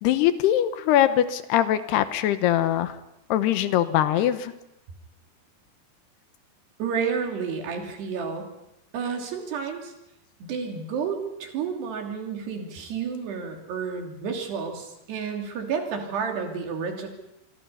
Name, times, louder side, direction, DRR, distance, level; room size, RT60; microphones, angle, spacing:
voice 1, 0.0-3.0 3.3-4.5 14.2-14.4, left 12 dB, 80° left, 11 dB, 3.0 m, -22 dB
voice 2, 6.8-8.5 8.9-9.9 10.4-17.1, right 6 dB, 75° right, 3 dB, 5.0 m, -30 dB
26.0 x 24.0 x 5.7 m, 0.85 s
omnidirectional pair, 4.8 m